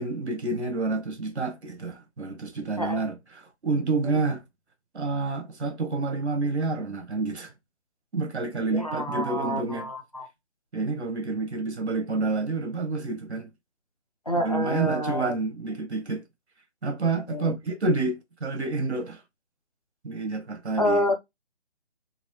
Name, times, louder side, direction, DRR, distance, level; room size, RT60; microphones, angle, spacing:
voice 1, 0.0-4.4 4.9-7.5 8.1-9.9 10.7-13.5 14.3-16.3 16.8-19.2 20.0-21.0, right 3 dB, 70° right, 1.2 m, -29 dB
voice 2, 8.7-10.3 14.3-15.3 17.3-17.5 20.8-21.1, equal, 35° left, 0.6 m, -28 dB
4.0 x 2.5 x 3.0 m
hypercardioid pair, 180°, 35 cm